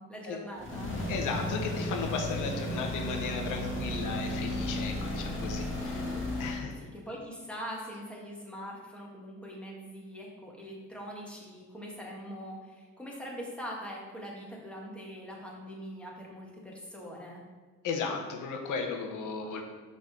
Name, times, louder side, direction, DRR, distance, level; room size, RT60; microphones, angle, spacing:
voice 1, 0.0-0.9 5.9-6.2 6.8-17.4, equal, 5° left, -3 dB, 1.8 m, -42 dB
sound 1, 0.6-6.7, left 1 dB, 40° left, 1.8 m, -34 dB
voice 2, 1.1-6.0 6.4-6.8 17.8-19.6, left 5 dB, 85° left, 3 dB, 1.1 m, -35 dB
5.8 x 4.0 x 5.1 m, 1.4 s
cardioid pair, 90°, 30 cm